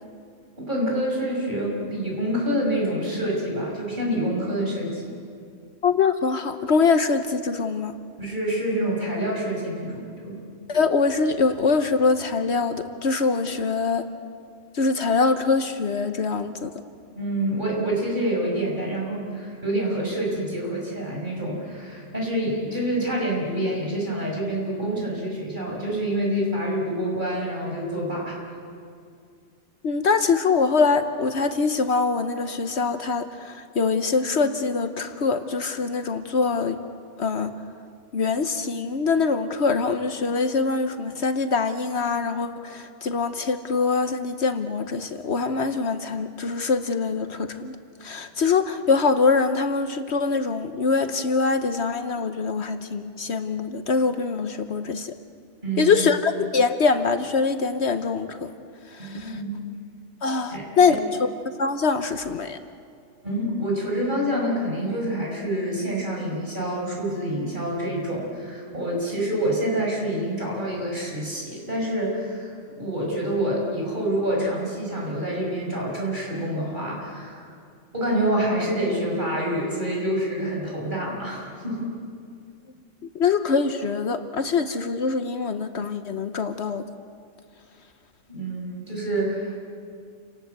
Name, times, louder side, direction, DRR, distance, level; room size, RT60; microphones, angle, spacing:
voice 1, 0.6-5.1 8.2-10.4 17.2-28.4 55.6-55.9 59.0-59.5 60.5-60.9 63.2-77.5 77.9-81.9 88.3-89.6, right 1 dB, 40° right, -2 dB, 6.2 m, -27 dB
voice 2, 5.8-7.9 10.7-14.0 14.7-16.7 29.8-36.8 37.2-37.5 38.1-47.8 48.0-55.1 55.8-58.5 59.0-59.4 60.2-61.0 61.6-62.6 83.1-86.8, left 4 dB, 65° left, 9 dB, 1.2 m, -23 dB
29.0 x 19.0 x 8.1 m, 2.3 s
omnidirectional pair, 1.3 m